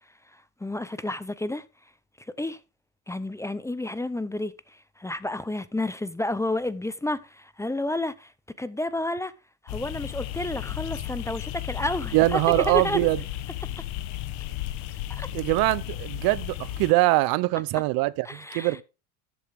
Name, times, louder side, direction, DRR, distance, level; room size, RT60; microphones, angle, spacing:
voice 1, 0.6-1.6 2.4-2.6 3.1-8.3 8.6-9.3 9.6-13.0 13.8-13.9 15.2-15.3 17.7-17.8 18.2-18.8, left 1 dB, 10° left, 0.6 m, -31 dB
sound 1, 9.7-16.9, left 14 dB, 80° left, 1.3 m, -34 dB
voice 2, 12.1-13.2 15.3-18.8, right 20 dB, 65° right, 0.7 m, -23 dB
13.5 x 7.5 x 3.5 m
supercardioid pair, 95°, 38 cm